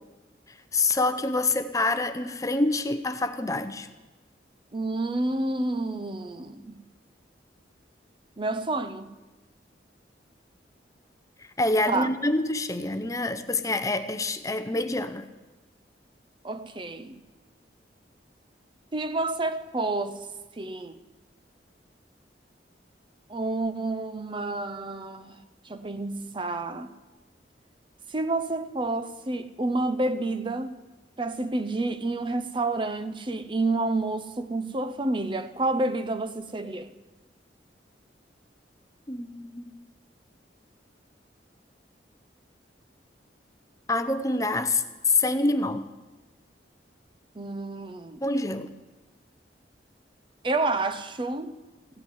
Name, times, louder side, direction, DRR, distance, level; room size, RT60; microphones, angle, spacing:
voice 1, 0.5-3.9 11.4-15.3 39.1-39.7 43.9-45.9 48.2-48.7, left 2 dB, 20° left, 0.6 m, -26 dB
voice 2, 4.7-6.8 8.4-9.1 11.9-12.1 16.4-17.2 18.9-20.3 20.6-21.0 23.3-25.4 25.6-26.9 28.1-30.8 31.2-36.9 47.4-48.2 50.4-51.6, right 2 dB, 25° right, 0.6 m, -29 dB
16.0 x 8.1 x 9.7 m
head